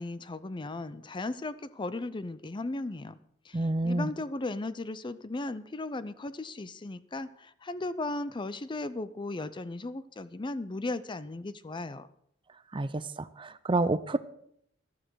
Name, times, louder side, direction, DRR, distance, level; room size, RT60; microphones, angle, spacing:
voice 1, 0.0-3.2 3.5-12.1, left 2 dB, 25° left, 15 dB, 0.5 m, -36 dB
voice 2, 3.5-4.1 12.7-14.2, right 2 dB, 25° right, 14 dB, 0.6 m, -29 dB
14.5 x 12.5 x 4.7 m, 0.69 s
head